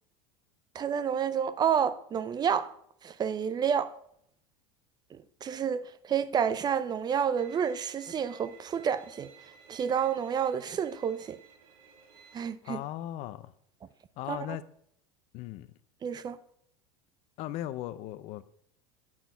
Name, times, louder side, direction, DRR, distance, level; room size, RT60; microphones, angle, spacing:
voice 1, 0.7-2.7 3.0-4.0 5.1-9.3 9.7-11.4 12.3-12.8 14.3-14.6 16.0-16.4, right 7 dB, 30° right, 0.7 m, -29 dB
Bowed string instrument, 7.4-12.4, right 7 dB, 65° right, 2.0 m, -55 dB
voice 2, 12.6-13.5 14.2-14.6 15.3-15.7 17.4-18.4, left 13 dB, 55° left, 0.7 m, -37 dB
9.0 x 6.2 x 5.7 m
hypercardioid pair, 90°, 14 cm